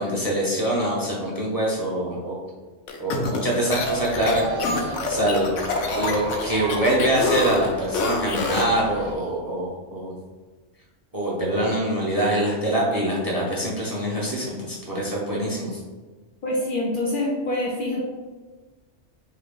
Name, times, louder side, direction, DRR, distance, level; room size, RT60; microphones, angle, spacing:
voice 1, 0.0-2.4 3.0-5.5 5.9-10.1 11.1-15.8, right 1 dB, 25° right, -4 dB, 0.6 m, -24 dB
sound 1, 2.9-8.8, left 3 dB, 85° left, 0.9 m, -27 dB
sound 2, 3.7-9.1, right 3 dB, 75° right, 0.9 m, -33 dB
voice 2, 16.4-18.0, left 1 dB, 60° left, -3 dB, 0.6 m, -25 dB
3.3 x 2.8 x 3.5 m, 1.3 s
omnidirectional pair, 1.2 m